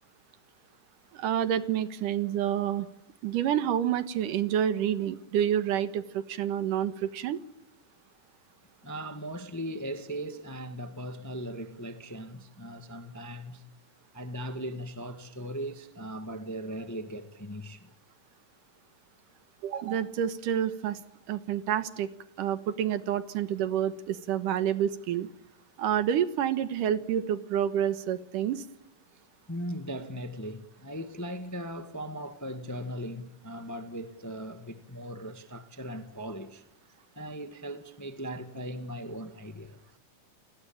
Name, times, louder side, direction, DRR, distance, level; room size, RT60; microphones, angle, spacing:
voice 1, 1.1-2.9 3.2-7.4 19.6-21.0 21.3-22.1 22.4-25.3 25.8-28.6, right 10 dB, 80° right, 2.9 m, -28 dB
voice 2, 8.8-13.6 14.1-17.9 29.5-36.6 37.1-39.8, equal, 10° left, 1.0 m, -38 dB
30.0 x 19.5 x 8.9 m
omnidirectional pair, 3.7 m